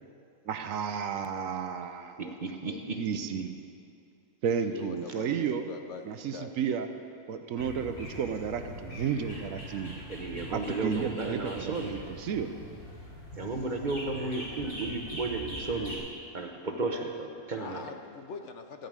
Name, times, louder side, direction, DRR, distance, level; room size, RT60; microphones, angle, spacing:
voice 1, 0.5-2.3 3.0-3.5 4.4-5.6 6.1-6.9 7.3-10.0 10.5-12.5, right 7 dB, 70° right, 8 dB, 1.0 m, -32 dB
voice 2, 2.4-3.0 5.1-5.2 10.1-11.9 13.4-16.1 16.3-17.9, right 3 dB, 40° right, 3 dB, 0.8 m, -34 dB
voice 3, 4.7-6.5 17.6-18.9, left 5 dB, 60° left, 6 dB, 0.9 m, -43 dB
sound 1, 7.6-16.0, equal, 75° left, 3.9 m, -42 dB
14.5 x 5.4 x 8.8 m, 2.6 s
omnidirectional pair, 1.5 m